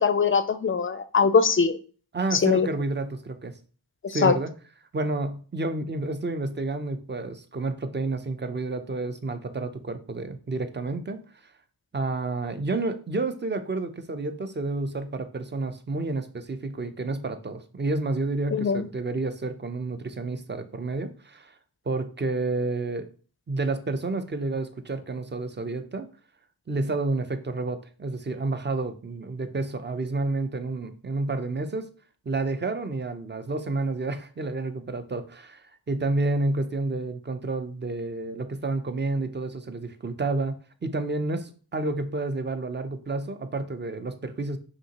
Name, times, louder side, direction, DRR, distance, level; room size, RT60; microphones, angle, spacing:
voice 1, 0.0-1.8 2.3-2.7 4.0-4.4 18.5-18.9, left 5 dB, 35° left, 12 dB, 0.4 m, -22 dB
voice 2, 2.1-3.6 4.1-4.5 4.9-11.2 11.9-21.5 21.9-23.1 23.5-26.1 26.7-31.9 32.3-44.6, right 2 dB, 30° right, 9 dB, 0.5 m, -30 dB
5.2 x 3.0 x 2.9 m, 0.40 s
wide cardioid pair, 60°, 38 cm